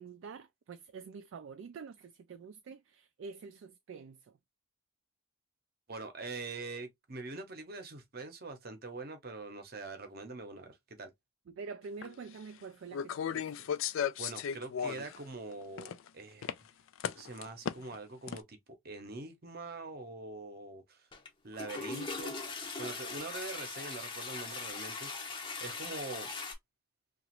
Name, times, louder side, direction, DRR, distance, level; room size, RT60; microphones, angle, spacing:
voice 1, 0.0-4.3 11.5-13.7, right 5 dB, 65° right, 0.3 m, -47 dB
voice 2, 5.9-11.1 14.2-16.6 17.1-18.6 18.8-21.1 21.4-25.1 25.6-26.3, right 3 dB, 45° right, 0.8 m, -44 dB
sound 1, 12.0-12.1 12.9-15.2 15.5-16.1 16.4-16.5 17.0-18.0 18.3-18.4, left 8 dB, 70° left, 0.3 m, -35 dB
Toilet flush, 21.1-21.3 21.5-26.5, left 4 dB, 25° left, 0.7 m, -40 dB
3.0 x 2.4 x 2.9 m
head